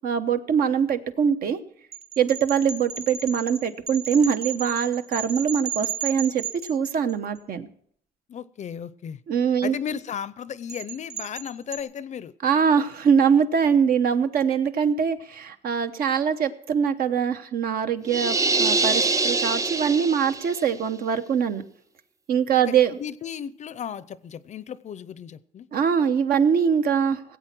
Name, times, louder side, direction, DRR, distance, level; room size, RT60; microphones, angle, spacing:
voice 1, 0.0-1.6 2.2-7.7 9.3-9.8 12.4-21.6 22.3-23.0 25.7-27.2, right 7 dB, 60° right, 9 dB, 1.0 m, -23 dB
sound 1, 1.9-7.4 10.7-11.8, right 8 dB, 40° right, 1.1 m, -34 dB
voice 2, 8.3-9.2 9.6-12.3 22.5-22.6 23.0-25.7, left 8 dB, 45° left, 18 dB, 0.6 m, -35 dB
sound 2, 18.1-20.6, right 3 dB, 20° right, 0.5 m, -24 dB
17.5 x 8.2 x 6.0 m, 0.64 s
cardioid pair, 120°, 17 cm